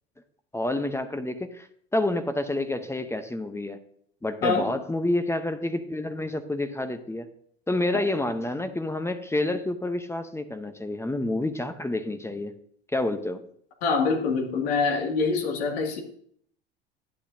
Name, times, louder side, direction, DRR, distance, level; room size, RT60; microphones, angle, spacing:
voice 1, 0.5-1.7 1.9-3.8 4.2-7.3 7.7-12.5 12.9-13.4, left 2 dB, 10° left, 9 dB, 0.8 m, -28 dB
voice 2, 13.8-16.0, left 4 dB, 70° left, 2 dB, 2.4 m, -25 dB
11.5 x 10.0 x 2.7 m, 0.62 s
hypercardioid pair, 80°, 32 cm